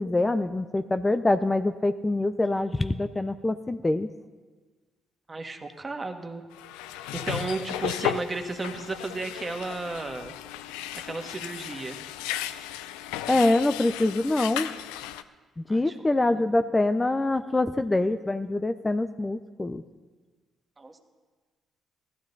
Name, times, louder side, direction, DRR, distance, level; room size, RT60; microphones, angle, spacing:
voice 1, 0.0-4.1 13.3-14.7 15.6-19.8, left 2 dB, 20° left, 10 dB, 0.6 m, -25 dB
voice 2, 5.3-6.4 6.9-10.3 10.9-12.0 15.7-15.9 16.3-16.4 20.8-21.0, right 3 dB, 30° right, 5 dB, 1.6 m, -34 dB
sound 1, 6.5-15.2, left 12 dB, 85° left, 0.4 m, -35 dB
16.0 x 12.5 x 4.0 m, 1.4 s
hypercardioid pair, 50°, 0 cm